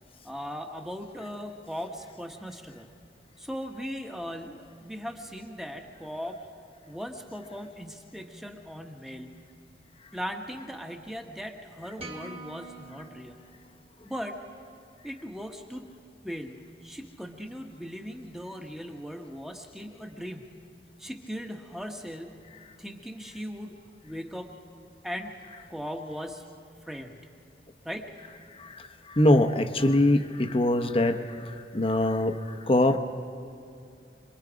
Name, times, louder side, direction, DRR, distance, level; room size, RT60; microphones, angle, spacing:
voice 1, 0.2-2.9 3.4-6.5 6.9-9.3 10.1-13.4 14.0-14.4 15.0-15.9 16.2-20.6 21.0-22.4 22.8-24.6 25.0-26.6 26.9-27.2 27.8-28.2, equal, ahead, 3 dB, 1.0 m, -39 dB
sound 1, 12.0-14.4, right 2 dB, 35° right, 1.6 m, -46 dB
voice 2, 28.6-33.0, left 1 dB, 30° left, 7 dB, 0.8 m, -23 dB
26.0 x 21.5 x 5.0 m, 2.5 s
head